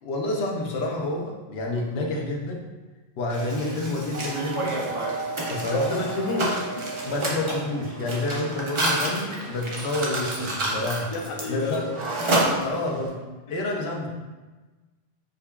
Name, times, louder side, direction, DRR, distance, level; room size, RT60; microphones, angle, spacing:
voice 1, 0.0-2.6 3.2-4.8 5.5-6.0 7.0-11.1 11.5-11.8 12.6-13.2 13.5-14.1, left 2 dB, 75° left, 0 dB, 0.8 m, -28 dB
Mechanisms, 3.3-13.1, right 1 dB, 40° right, 0.5 m, -30 dB
sound 1, 4.1-8.4, right 3 dB, 65° right, 0.8 m, -36 dB
voice 2, 5.7-6.9 9.2-9.4 11.1-11.9 12.3-12.6, left 2 dB, 55° left, 1 dB, 0.3 m, -31 dB
5.1 x 2.3 x 2.2 m, 1.2 s
omnidirectional pair, 1.1 m